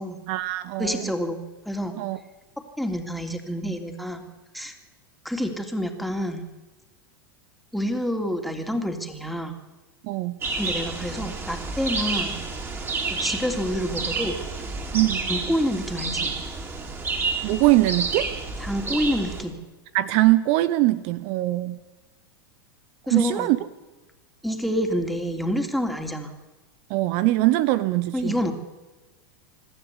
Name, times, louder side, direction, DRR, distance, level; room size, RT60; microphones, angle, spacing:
voice 1, 0.3-1.1 2.0-2.2 10.0-10.4 14.9-15.3 17.4-18.3 19.9-21.8 23.1-23.6 26.9-28.3, right 17 dB, 50° right, 15 dB, 0.9 m, -22 dB
voice 2, 0.8-1.4 1.6-1.9 2.8-4.2 4.5-4.8 5.2-6.4 7.7-9.5 10.6-12.3 13.1-14.4 15.3-16.3 18.6-19.6 23.1-23.5 24.4-26.3 28.1-28.5, equal, ahead, 4 dB, 3.1 m, -27 dB
sound 1, 10.4-19.4, right 4 dB, 20° right, 4.3 m, -30 dB
25.5 x 12.5 x 8.4 m, 1.2 s
hypercardioid pair, 110°, 12 cm